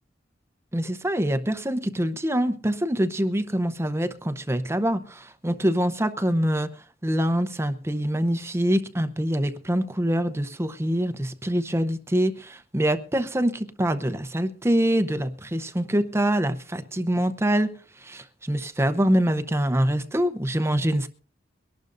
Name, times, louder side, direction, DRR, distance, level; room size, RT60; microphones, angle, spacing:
voice 1, 0.7-6.7 7.0-17.7 18.0-21.1, equal, 15° right, 0.7 m, -25 dB
23.0 x 12.0 x 2.6 m
head